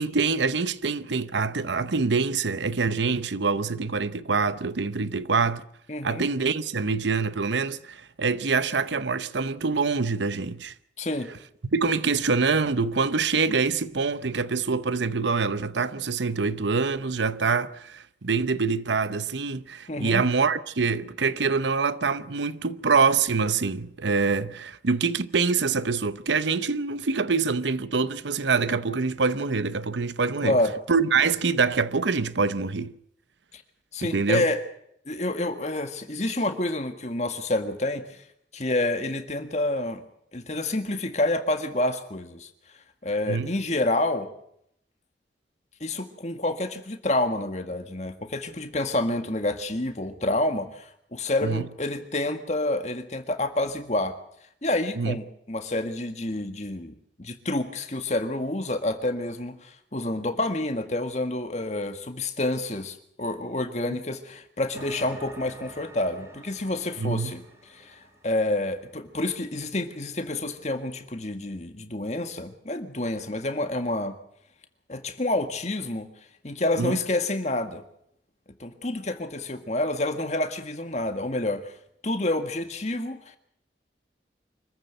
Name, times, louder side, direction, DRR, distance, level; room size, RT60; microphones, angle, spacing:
voice 1, 0.0-5.6 6.0-10.7 11.7-30.6 30.9-32.9 34.0-34.4 43.3-43.5 51.4-51.6 55.0-55.2 63.9-64.0 67.0-67.3 76.8-77.0, right 4 dB, 80° right, 0.8 m, -25 dB
voice 2, 5.9-6.3 11.0-11.3 19.9-20.2 30.4-30.7 33.5-33.6 33.9-34.6 35.1-38.2 38.5-40.0 40.3-42.5 43.0-44.3 45.8-54.2 54.6-67.4 67.7-74.2 74.9-76.1 76.4-77.8 78.6-81.7 82.0-83.4, left 2 dB, 40° left, 1.8 m, -28 dB
sound 1, 64.7-69.2, right 1 dB, 15° right, 3.2 m, -48 dB
25.5 x 14.5 x 7.9 m
head